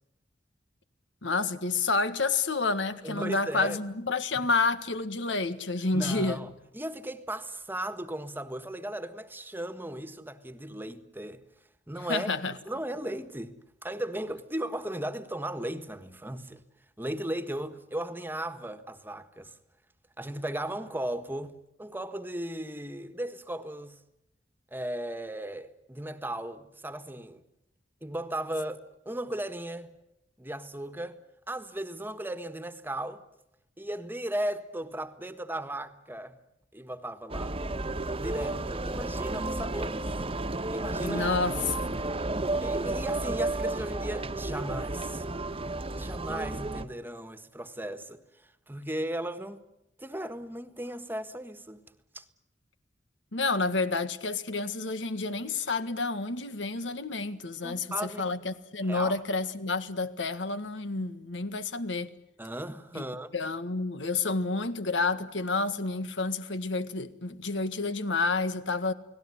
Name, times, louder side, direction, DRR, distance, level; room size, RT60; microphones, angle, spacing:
voice 1, 1.2-6.4 12.1-12.5 41.0-41.5 53.3-62.1 62.9-63.0 63.3-68.9, left 3 dB, 90° left, 1.7 m, -29 dB
voice 2, 3.0-3.8 4.3-4.5 5.9-11.4 11.9-12.3 12.7-16.6 17.0-19.5 20.2-24.0 24.7-27.4 28.0-29.9 30.4-31.2 31.5-33.2 33.8-36.4 36.7-37.6 38.1-40.1 40.7-41.3 42.6-45.3 45.9-49.6 50.0-51.8 52.1-52.2 57.6-58.2 58.8-59.2 62.4-63.3, right 1 dB, 10° right, 1.5 m, -36 dB
sound 1, 37.3-46.8, right 2 dB, 30° right, 1.2 m, -32 dB
30.0 x 19.0 x 9.8 m
head